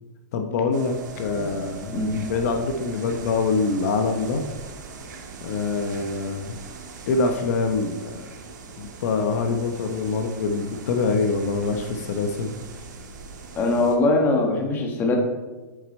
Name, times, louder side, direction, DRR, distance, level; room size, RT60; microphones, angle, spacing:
voice 1, 0.3-4.4 5.4-6.6 7.1-8.3 8.8-12.5, left 4 dB, 55° left, 5 dB, 0.9 m, -25 dB
sound 1, 0.7-14.0, right 4 dB, 80° right, 1.7 m, -40 dB
voice 2, 1.9-2.3 13.5-15.2, left 2 dB, 20° left, 2 dB, 1.3 m, -22 dB
8.5 x 6.8 x 4.3 m, 1.2 s
hypercardioid pair, 155°, 10 cm